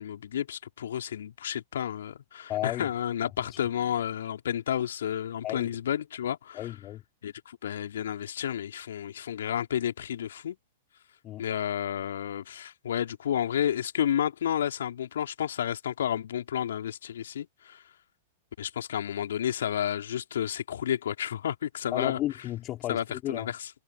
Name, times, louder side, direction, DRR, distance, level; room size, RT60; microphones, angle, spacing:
voice 1, 0.0-6.7 7.2-10.6 11.4-17.8 18.6-22.2 22.9-23.7, left 10 dB, 65° left, 3.0 m, -31 dB
voice 2, 2.5-2.9 5.4-5.7 6.5-7.0 11.2-11.4 21.9-23.5, left 14 dB, 35° left, 3.2 m, -33 dB
figure-of-eight pair, 100°, 0 cm